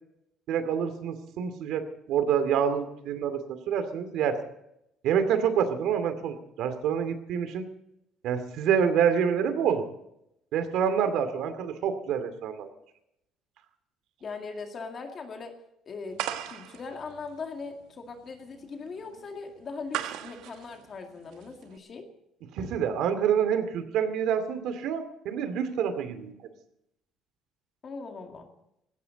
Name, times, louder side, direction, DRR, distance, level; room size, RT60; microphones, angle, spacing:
voice 1, 0.5-3.4 3.7-4.4 5.0-7.7 8.2-9.8 10.5-12.7 22.5-26.3, right 8 dB, 60° right, 10 dB, 2.4 m, -27 dB
voice 2, 14.2-15.6 15.9-22.1 27.8-28.5, left 4 dB, 30° left, 4 dB, 2.1 m, -40 dB
sound 1, 16.2-21.8, right 12 dB, 80° right, 1.5 m, -38 dB
19.5 x 17.5 x 4.0 m, 0.82 s
cardioid pair, 175°, 0 cm